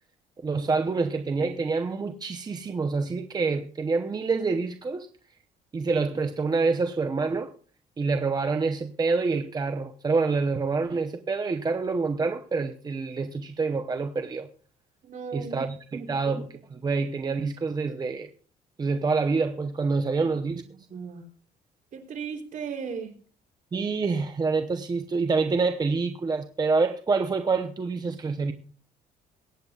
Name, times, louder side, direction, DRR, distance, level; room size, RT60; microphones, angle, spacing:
voice 1, 0.4-5.1 5.7-7.5 8.0-14.5 15.3-18.3 18.8-20.6 23.7-28.5, right 4 dB, 25° right, 0.8 m, -27 dB
voice 2, 15.0-15.6 16.0-16.1 20.7-21.2 21.9-23.1, right 6 dB, 50° right, 3.4 m, -36 dB
22.5 x 9.6 x 2.4 m
cardioid pair, 110°, 17 cm